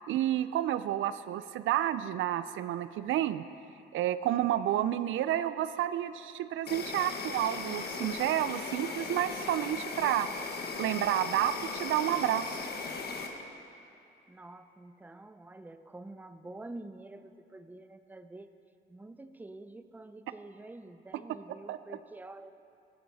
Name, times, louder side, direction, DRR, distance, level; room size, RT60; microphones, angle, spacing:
voice 1, 0.1-3.4 3.9-10.3 10.8-12.6 21.7-22.0, right 12 dB, 80° right, 13 dB, 0.5 m, -30 dB
Insect, 6.7-13.3, left 4 dB, 55° left, 1.4 m, -38 dB
voice 2, 14.3-18.5 18.9-22.5, right 2 dB, 10° right, 10 dB, 0.5 m, -47 dB
14.0 x 13.5 x 4.1 m, 2.6 s
cardioid pair, 90°, 20 cm